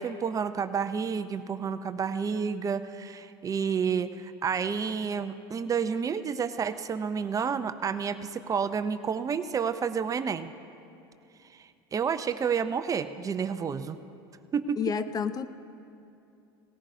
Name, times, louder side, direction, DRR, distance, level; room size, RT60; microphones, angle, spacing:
voice 1, 0.0-10.5 11.5-11.6 11.9-14.0 14.5-14.8, right 6 dB, 25° right, 11 dB, 0.5 m, -30 dB
voice 2, 14.8-15.5, left 6 dB, 30° left, 12 dB, 0.5 m, -29 dB
18.5 x 15.0 x 2.7 m, 2.7 s
hypercardioid pair, 90°, 13 cm